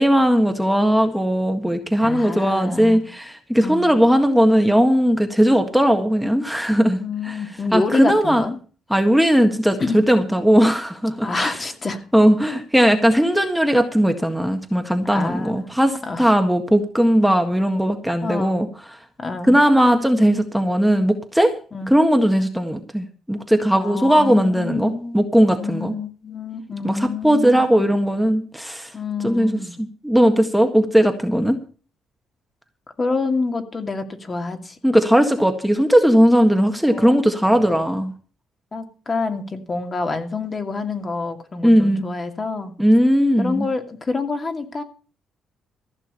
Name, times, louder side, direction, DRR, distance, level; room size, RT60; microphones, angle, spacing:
voice 1, 0.0-7.0 7.2-7.4 7.7-8.4 8.9-11.6 12.1-18.7 19.5-21.5 21.9-25.9 26.8-28.9 29.2-31.6 34.8-38.1 41.6-42.0 42.8-43.7, equal, ahead, 5 dB, 1.7 m, -18 dB
voice 2, 2.0-3.1 3.6-4.0 7.0-8.6 9.8-10.0 11.2-12.0 15.1-15.6 16.0-16.3 18.2-18.6 19.2-19.6 21.7-21.9 23.7-25.3 25.5-27.9 28.9-29.7 33.0-34.8 36.9-37.8 38.7-42.7 43.4-44.8, left 3 dB, 30° left, 5 dB, 2.5 m, -27 dB
15.0 x 6.4 x 8.6 m, 0.39 s
cardioid pair, 90°, 0 cm